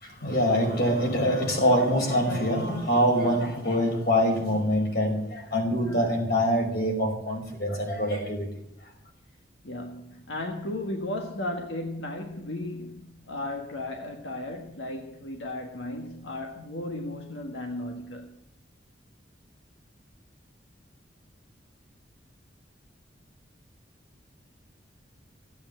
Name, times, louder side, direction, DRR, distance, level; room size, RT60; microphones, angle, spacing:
voice 1, 0.0-8.5, equal, 60° left, 5.3 m, -24 dB
voice 2, 9.6-18.4, left 1 dB, 85° left, 1.6 m, -35 dB
16.0 x 8.7 x 9.0 m
head